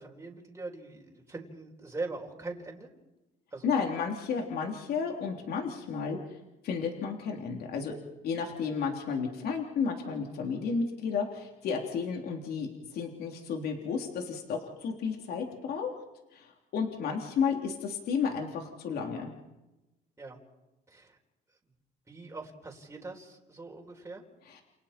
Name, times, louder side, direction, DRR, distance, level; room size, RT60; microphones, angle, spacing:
voice 1, 0.0-2.9 3.5-3.7 20.2-20.4 20.9-21.2 22.1-24.2, right 3 dB, 15° right, -1 dB, 4.4 m, -41 dB
voice 2, 3.6-6.2 6.6-8.0 8.2-15.9 16.3-19.3 24.5-24.6, left 5 dB, 65° left, 1 dB, 3.3 m, -32 dB
29.5 x 29.0 x 4.4 m, 1.0 s
cardioid pair, 110°, 17 cm